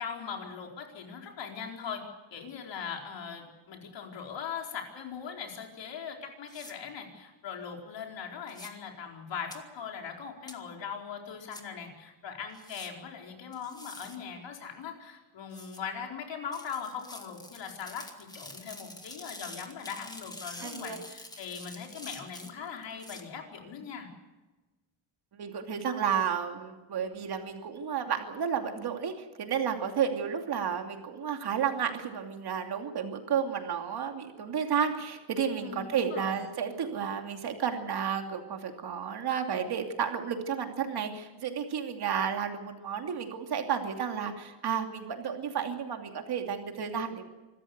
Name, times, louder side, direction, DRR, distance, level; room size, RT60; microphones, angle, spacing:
voice 1, 0.0-2.0 2.3-24.1 35.6-36.4, left 7 dB, 65° left, 2 dB, 4.6 m, -40 dB
sound 1, 6.5-6.7 8.5-8.7 9.5-9.6 10.5-10.6 11.5-11.6 12.5-12.9 13.5-14.2 15.5-15.8 16.5-23.2, left 1 dB, 10° left, 1.9 m, -47 dB
voice 2, 20.6-21.0 25.3-47.2, right 7 dB, 50° right, 4 dB, 2.8 m, -32 dB
25.5 x 14.0 x 8.1 m, 1.2 s
cardioid pair, 170°, 48 cm